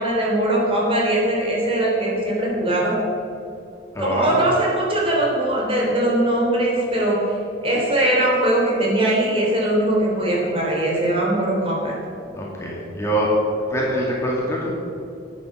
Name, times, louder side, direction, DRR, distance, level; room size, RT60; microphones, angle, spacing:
voice 1, 0.0-3.0 4.0-7.2 7.6-11.9, right 1 dB, 30° right, -3 dB, 3.4 m, -20 dB
voice 2, 3.9-4.5 12.3-13.3 13.7-14.7, right 1 dB, 15° left, -4 dB, 2.5 m, -24 dB
12.5 x 9.6 x 6.8 m, 2.7 s
head